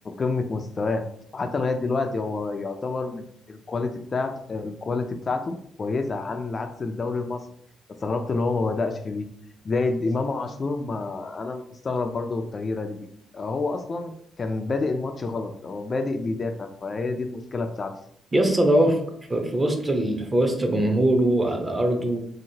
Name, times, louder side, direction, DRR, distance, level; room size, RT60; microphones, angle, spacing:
voice 1, 0.2-1.0 1.3-7.4 8.0-9.3 9.6-13.1 13.3-17.9, left 3 dB, 35° left, 5 dB, 0.3 m, -28 dB
voice 2, 18.3-19.0 19.3-22.2, right 1 dB, 20° right, 4 dB, 0.6 m, -21 dB
2.8 x 2.8 x 2.7 m, 0.68 s
cardioid pair, 90°, 0 cm